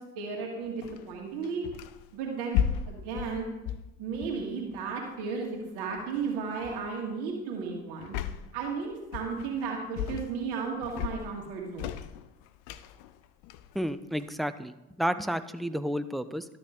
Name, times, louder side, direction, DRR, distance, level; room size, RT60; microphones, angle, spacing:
voice 1, 0.2-1.6 2.1-3.5 4.0-8.2 8.5-12.0, right 5 dB, 75° right, 0 dB, 2.0 m, -34 dB
sound 1, 0.8-2.1 2.5-4.9 6.0-6.2 6.6-6.9 8.0-8.6 9.1-9.7 10.0-10.5 10.8-14.4, left 9 dB, 80° left, 0.6 m, -35 dB
voice 2, 13.7-14.7 15.0-16.5, equal, ahead, 11 dB, 0.6 m, -31 dB
12.0 x 6.9 x 3.7 m, 0.99 s
hypercardioid pair, 50°, 40 cm